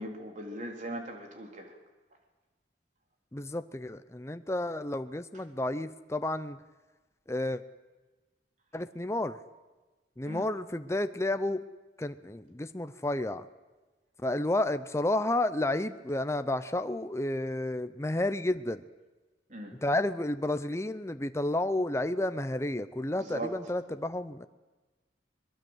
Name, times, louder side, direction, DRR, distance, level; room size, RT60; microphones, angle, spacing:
voice 1, 0.0-1.7 10.2-10.5 19.5-19.8 23.2-23.5, right 1 dB, 45° right, 3 dB, 3.6 m, -39 dB
voice 2, 3.3-6.6 7.3-7.6 8.7-9.4 10.2-11.6 12.0-13.5 14.2-18.8 19.8-24.5, left 1 dB, 15° left, 10 dB, 0.7 m, -31 dB
22.5 x 21.5 x 8.0 m, 1.2 s
head